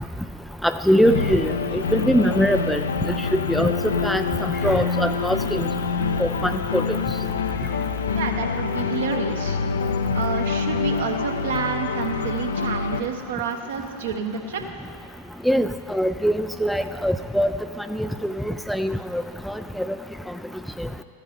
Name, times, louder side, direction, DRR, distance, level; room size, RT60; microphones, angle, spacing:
voice 1, 0.6-2.8 3.3-3.7 4.0-5.6 6.2-7.0 15.5-17.5 17.9-19.9 20.8-20.9, equal, ahead, 8 dB, 0.3 m, -22 dB
sound 1, 1.0-13.0, left 5 dB, 70° left, 0.5 m, -26 dB
voice 2, 8.1-9.6 10.1-14.6, right 6 dB, 60° right, 4 dB, 1.2 m, -29 dB
14.5 x 10.0 x 5.1 m, 2.5 s
figure-of-eight pair, 90°, 0 cm